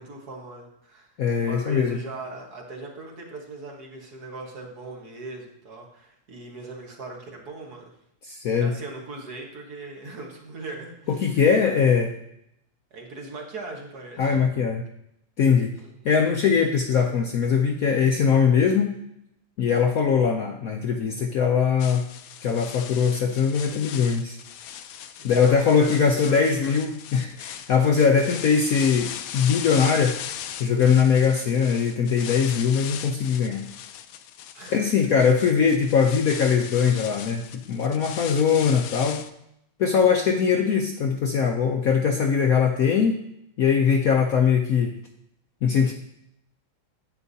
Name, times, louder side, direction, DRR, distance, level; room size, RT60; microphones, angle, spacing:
voice 1, 0.0-1.1 1.4-8.0 8.6-11.9 12.9-14.4 25.2-26.8 34.5-34.9, right 2 dB, 55° right, 0 dB, 1.9 m, -39 dB
voice 2, 1.2-2.0 8.3-8.7 11.1-12.1 14.2-14.8 15.4-15.7 16.0-18.9 19.6-22.1 22.4-24.4 25.2-30.2 30.6-33.6 34.7-39.2 39.8-43.2 43.6-44.9 45.6-45.9, left 6 dB, 65° left, 3 dB, 0.9 m, -21 dB
sound 1, 21.8-39.3, left 10 dB, 85° left, 1.4 m, -38 dB
10.5 x 7.9 x 2.7 m, 0.76 s
omnidirectional pair, 2.1 m